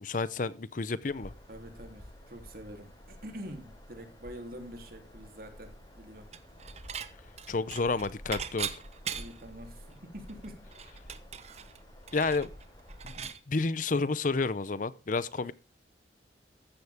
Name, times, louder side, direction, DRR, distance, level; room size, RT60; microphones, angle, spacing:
voice 1, 0.0-1.3 7.5-8.8 12.1-12.5 13.0-15.5, left 3 dB, 45° left, 0.6 m, -30 dB
Bird vocalization bird call bird song, 1.1-13.3, equal, 25° left, 4.4 m, -50 dB
voice 2, 1.5-6.3 9.1-10.6, equal, 55° right, 3.2 m, -46 dB
Dishes pots and pans / Chink clink, 6.3-7.1 7.4-9.5 9.9-10.0 10.3-13.4, right 7 dB, 40° right, 1.0 m, -40 dB
14.5 x 11.5 x 3.6 m
head